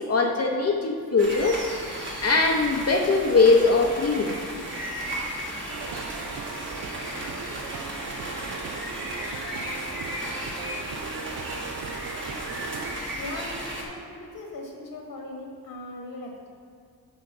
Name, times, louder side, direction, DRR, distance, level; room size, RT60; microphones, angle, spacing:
voice 1, 0.0-1.6 2.2-4.3, left 3 dB, 45° left, 1 dB, 0.7 m, -21 dB
sound 1, 1.2-13.8, right 1 dB, 30° right, 1.4 m, -35 dB
sound 2, 5.7-13.0, right 6 dB, 60° right, 0.6 m, -39 dB
voice 2, 13.2-16.5, left 1 dB, 70° left, -1 dB, 1.4 m, -39 dB
6.4 x 5.0 x 5.6 m, 2.3 s
cardioid pair, 105°, 36 cm